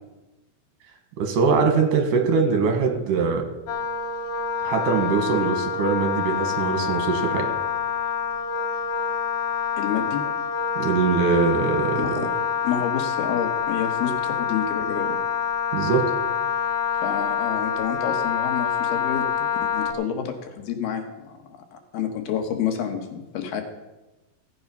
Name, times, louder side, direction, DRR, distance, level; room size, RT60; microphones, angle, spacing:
voice 1, 1.2-3.5 4.6-7.5 10.8-12.2 15.7-16.0, right 5 dB, 65° right, 3 dB, 2.9 m, -22 dB
Wind instrument woodwind instrument, 3.7-19.9, left 7 dB, 65° left, 1.8 m, -26 dB
voice 2, 9.8-10.2 12.0-12.3 12.6-15.2 17.0-19.2 19.6-21.4 21.7-23.6, left 8 dB, 80° left, 4 dB, 3.2 m, -29 dB
16.0 x 7.8 x 5.4 m, 1.1 s
omnidirectional pair, 4.4 m